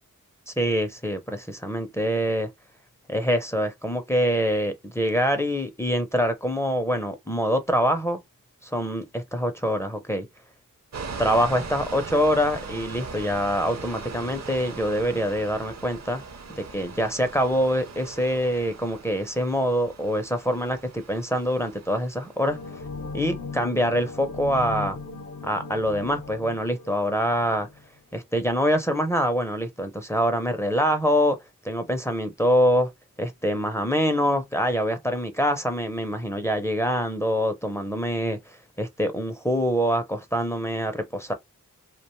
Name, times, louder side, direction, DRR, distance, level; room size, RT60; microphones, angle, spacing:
voice 1, 0.5-2.5 3.1-8.2 8.6-10.3 11.2-16.2 16.5-22.6 23.1-25.0 25.4-27.7 28.1-31.4 31.6-32.9 33.2-38.4 38.8-41.3, equal, 10° left, 0.5 m, -25 dB
sound 1, 10.9-22.7, right 4 dB, 50° right, 0.6 m, -40 dB
sound 2, 22.5-27.8, left 4 dB, 55° left, 0.6 m, -37 dB
2.4 x 2.2 x 3.0 m
wide cardioid pair, 65°, 34 cm